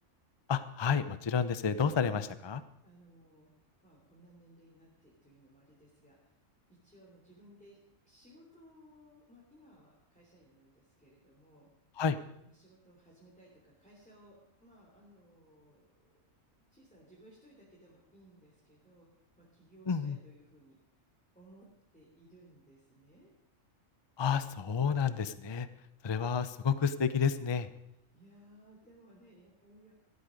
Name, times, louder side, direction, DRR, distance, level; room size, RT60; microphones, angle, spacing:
voice 1, 0.5-2.6 12.0-12.2 19.9-20.2 24.2-25.7 26.0-27.7, left 6 dB, 35° left, 13 dB, 0.4 m, -30 dB
voice 2, 2.8-3.5 3.8-6.4 6.7-11.7 12.5-16.2 16.5-19.1 19.4-20.8 21.3-23.3 28.1-29.9, right 1 dB, 5° left, -5 dB, 3.2 m, -60 dB
15.0 x 12.5 x 5.2 m, 0.79 s
omnidirectional pair, 1.4 m